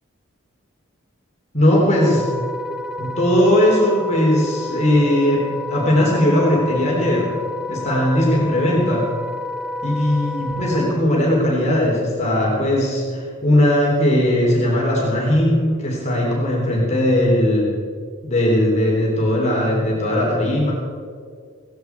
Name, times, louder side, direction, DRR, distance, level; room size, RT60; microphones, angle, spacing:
voice 1, 1.5-2.2 3.0-7.3 7.7-9.1 9.8-17.7 18.2-20.7, left 1 dB, 30° left, -3 dB, 3.6 m, -18 dB
Wind instrument woodwind instrument, 1.9-10.9, left 1 dB, 5° right, 0.5 m, -30 dB
17.5 x 15.5 x 4.7 m, 2.1 s
head